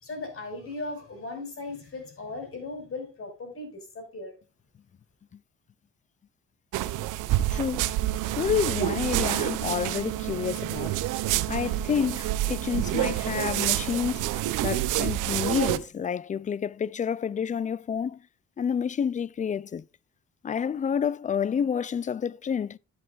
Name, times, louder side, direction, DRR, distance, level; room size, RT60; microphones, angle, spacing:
voice 1, 0.0-4.3, left 2 dB, 45° left, 5.7 m, -37 dB
sound 1, 6.7-15.8, right 14 dB, 85° right, 0.7 m, -28 dB
voice 2, 7.5-7.9 8.4-18.2 18.6-19.8 20.4-22.8, left 7 dB, 25° left, 0.4 m, -29 dB
13.0 x 8.8 x 2.4 m
cardioid pair, 90°, 30 cm